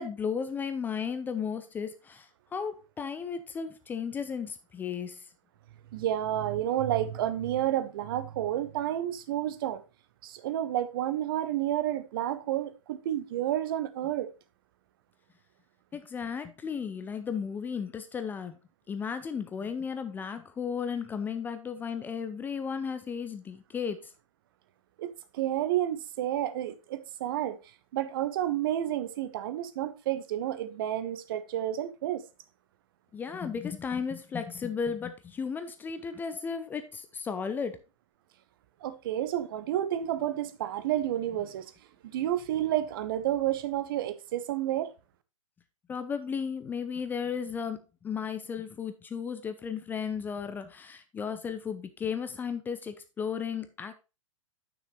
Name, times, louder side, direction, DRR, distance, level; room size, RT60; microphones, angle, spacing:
voice 1, 0.0-5.2 15.9-18.6 18.9-24.1 33.1-37.8 45.9-53.9, left 6 dB, 10° left, 0.5 m, -34 dB
voice 2, 5.9-9.8 10.2-14.3 25.0-27.6 27.9-32.2 38.8-41.6 42.0-44.9, right 12 dB, 45° right, 0.8 m, -30 dB
9.2 x 6.2 x 3.1 m
figure-of-eight pair, 110°, 16 cm